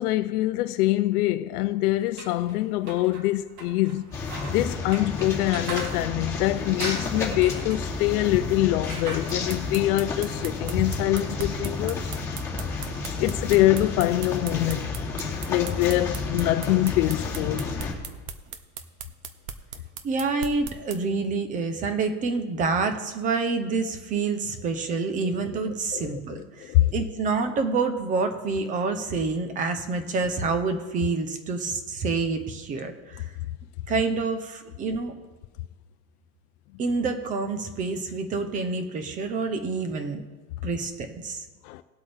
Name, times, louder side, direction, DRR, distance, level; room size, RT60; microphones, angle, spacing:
voice 1, 0.0-4.1 4.5-12.1 13.2-14.9 15.5-17.7 25.9-26.9 41.6-41.8, left 16 dB, 85° left, 0.6 m, -24 dB
sound 1, 2.0-12.1, right 3 dB, 90° right, 2.7 m, -42 dB
sound 2, 4.1-17.9, left 4 dB, 5° left, 2.5 m, -31 dB
sound 3, 9.3-21.0, right 8 dB, 65° right, 1.1 m, -38 dB
voice 2, 20.0-33.2 33.9-35.1 36.8-40.2 40.6-41.4, right 4 dB, 20° right, 0.6 m, -27 dB
19.5 x 8.1 x 3.4 m
supercardioid pair, 175°, 44 cm